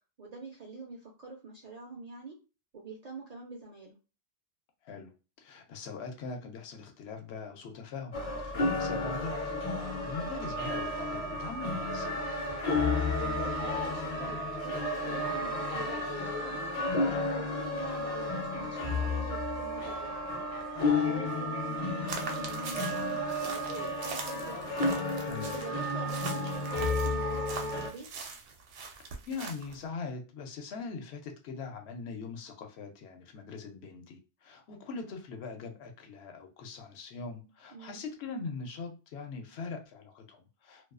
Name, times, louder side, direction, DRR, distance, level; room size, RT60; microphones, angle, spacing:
voice 1, 0.2-2.4 2.7-3.9 12.6-24.8 25.4-28.1 37.7-38.0, right 3 dB, 55° right, -1 dB, 0.4 m, -45 dB
voice 2, 4.8-9.4 9.7-12.2 25.2-25.6 29.3-40.9, left 4 dB, 70° left, 4 dB, 0.8 m, -42 dB
sound 1, 8.1-27.9, left 2 dB, 45° left, 0.5 m, -32 dB
sound 2, 22.1-29.8, right 5 dB, 80° right, 0.9 m, -43 dB
2.3 x 2.3 x 2.4 m, 0.32 s
omnidirectional pair, 1.2 m